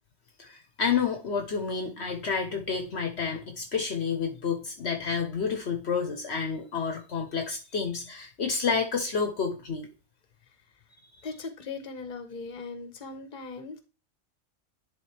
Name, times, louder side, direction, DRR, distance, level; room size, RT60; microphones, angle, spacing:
voice 1, 0.4-9.9 11.0-11.1, left 5 dB, 60° left, 5 dB, 1.1 m, -30 dB
voice 2, 11.2-13.8, left 4 dB, 40° left, 7 dB, 1.1 m, -39 dB
10.5 x 3.7 x 3.3 m, 0.33 s
omnidirectional pair, 1.3 m